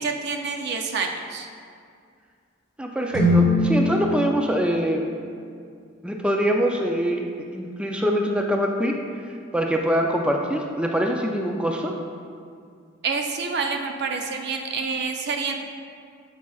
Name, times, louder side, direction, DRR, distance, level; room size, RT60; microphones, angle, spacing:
voice 1, 0.0-1.5 13.0-15.7, right 4 dB, 55° right, 3 dB, 0.5 m, -28 dB
voice 2, 2.8-5.1 6.0-7.2 7.5-8.9 9.5-11.9, equal, 5° right, 1 dB, 0.4 m, -24 dB
sound 1, 3.1-5.5, left 1 dB, 25° right, 1.8 m, -23 dB
9.4 x 7.3 x 2.3 m, 2.2 s
head